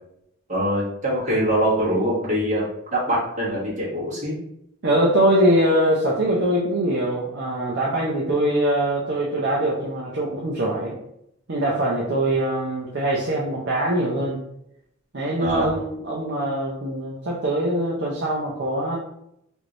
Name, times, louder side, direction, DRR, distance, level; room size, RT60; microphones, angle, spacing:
voice 1, 0.5-2.7 2.9-4.4 15.4-15.8, equal, 35° right, -7 dB, 1.4 m, -23 dB
voice 2, 4.8-11.0 11.5-14.4 15.1-19.0, right 1 dB, 50° right, -5 dB, 0.6 m, -22 dB
3.2 x 2.6 x 3.0 m, 0.76 s
head